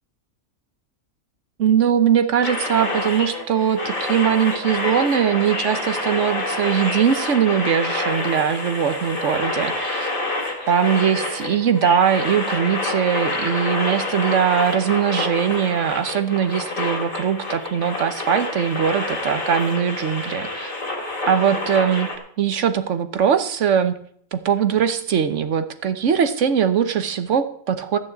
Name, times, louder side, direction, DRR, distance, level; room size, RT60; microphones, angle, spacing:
voice 1, 1.6-10.1 10.7-20.7 21.2-22.1 22.4-24.0 24.3-28.0, right 8 dB, 60° right, 10 dB, 1.2 m, -21 dB
sound 1, 2.4-22.2, left 2 dB, 70° left, 3.0 m, -27 dB
14.0 x 6.7 x 8.0 m, 0.64 s
omnidirectional pair, 1.5 m